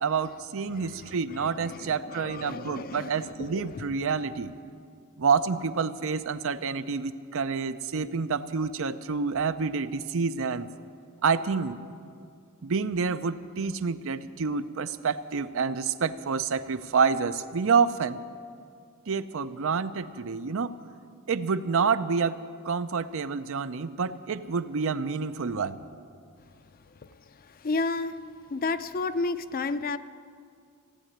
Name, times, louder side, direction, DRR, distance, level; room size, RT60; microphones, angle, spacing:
voice 1, 0.0-4.5 5.2-10.7 11.2-11.8 12.6-18.2 19.1-20.7 21.3-22.4 22.6-25.8, right 5 dB, 65° right, 12 dB, 0.6 m, -28 dB
voice 2, 0.7-3.9 27.6-28.2 28.5-30.0, left 3 dB, 40° left, 12 dB, 0.5 m, -32 dB
15.5 x 9.0 x 9.9 m, 2.2 s
head